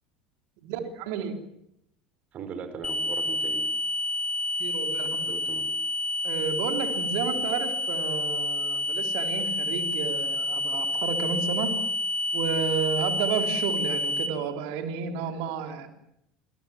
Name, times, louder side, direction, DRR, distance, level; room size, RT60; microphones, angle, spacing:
voice 1, 0.6-1.4 4.6-5.4 6.2-11.7 12.3-15.9, right 6 dB, 55° right, 5 dB, 3.8 m, -31 dB
voice 2, 2.3-3.7 5.2-5.7 6.9-7.4, right 5 dB, 40° right, 9 dB, 5.3 m, -40 dB
sound 1, 2.8-14.3, left 1 dB, 25° left, 3.3 m, -29 dB
26.5 x 26.0 x 7.6 m, 0.78 s
figure-of-eight pair, 65°, 3 cm